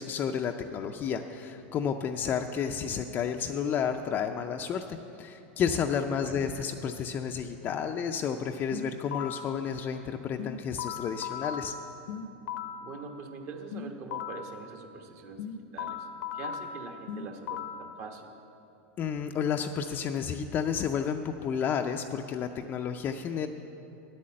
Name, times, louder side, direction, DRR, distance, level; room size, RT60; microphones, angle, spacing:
voice 1, 0.0-11.7 19.0-23.5, left 7 dB, 30° left, 4 dB, 0.4 m, -31 dB
voice 2, 6.1-6.4 12.8-16.1 16.3-18.3, right 4 dB, 45° right, 4 dB, 1.2 m, -43 dB
sound 1, 8.7-9.6 10.4-12.9 13.7-14.6 15.4-17.9, left 7 dB, 75° left, 0.8 m, -37 dB
10.0 x 8.5 x 7.6 m, 2.8 s
supercardioid pair, 135°, 6 cm